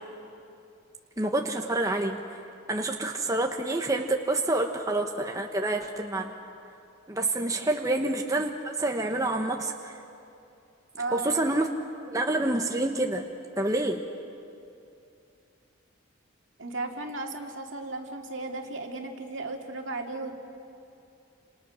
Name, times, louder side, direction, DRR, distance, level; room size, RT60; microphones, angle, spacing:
voice 1, 1.2-2.2 2.7-6.3 7.1-10.0 11.1-11.7 12.1-13.3 13.6-14.0, right 2 dB, 15° right, 2 dB, 1.1 m, -27 dB
voice 2, 11.0-11.6 16.6-20.3, right 2 dB, 65° right, 2 dB, 2.3 m, -35 dB
29.5 x 27.0 x 6.4 m, 2.6 s
head